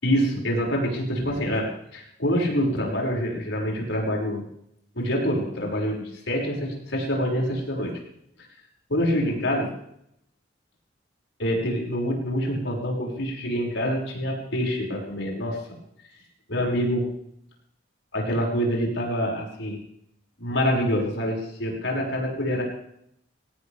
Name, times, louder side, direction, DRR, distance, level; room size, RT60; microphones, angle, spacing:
voice 1, 0.0-4.5 4.9-7.9 8.9-9.7 11.4-15.8 16.5-17.1 18.1-19.8 20.4-22.6, equal, 90° left, -1 dB, 6.0 m, -26 dB
22.0 x 18.0 x 3.5 m, 0.73 s
head